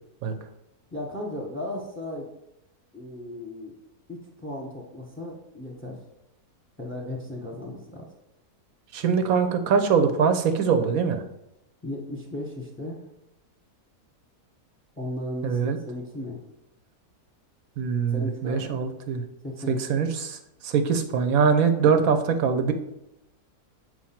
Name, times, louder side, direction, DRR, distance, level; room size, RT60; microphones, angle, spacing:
voice 1, 0.9-2.3 2.9-3.7 4.1-6.0 6.8-8.1 11.8-13.0 15.0-15.6 15.9-16.4 18.1-18.7 19.4-19.9, left 1 dB, 10° left, -1 dB, 0.7 m, -35 dB
voice 2, 8.9-11.2 15.4-15.8 17.8-19.2 19.9-20.4 20.6-22.7, right 6 dB, 70° right, 8 dB, 1.1 m, -23 dB
7.2 x 2.6 x 5.7 m, 0.84 s
omnidirectional pair, 1.6 m